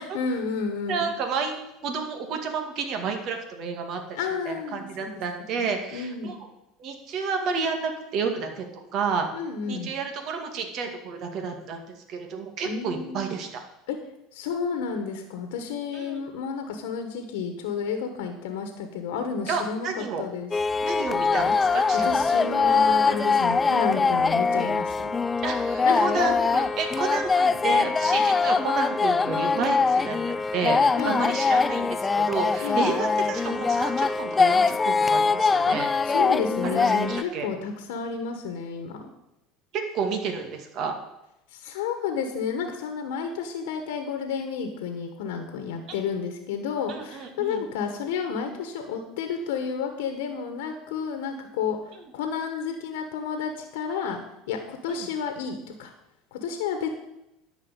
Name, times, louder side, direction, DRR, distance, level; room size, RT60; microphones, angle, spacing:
voice 1, 0.0-1.1 4.1-5.1 5.5-6.4 9.3-9.9 12.6-13.3 13.9-14.0 14.3-20.5 21.7-21.8 22.0-25.1 25.8-26.3 31.0-31.2 32.6-32.9 35.7-35.8 36.0-39.1 41.5-54.2 54.5-55.9 56.3-56.9, left 6 dB, 80° left, 6 dB, 1.4 m, -31 dB
voice 2, 0.9-4.0 4.5-6.4 6.8-8.6 8.9-9.3 9.7-11.8 12.1-13.6 15.9-16.2 19.5-20.2 20.8-22.4 25.4-35.9 36.6-37.5 39.7-40.9 46.9-47.6 54.9-55.1, right 5 dB, 55° right, 4 dB, 2.0 m, -30 dB
sound 1, 20.5-37.2, left 4 dB, 20° left, 0.3 m, -23 dB
10.5 x 5.0 x 8.3 m, 0.87 s
supercardioid pair, 105°, 0 cm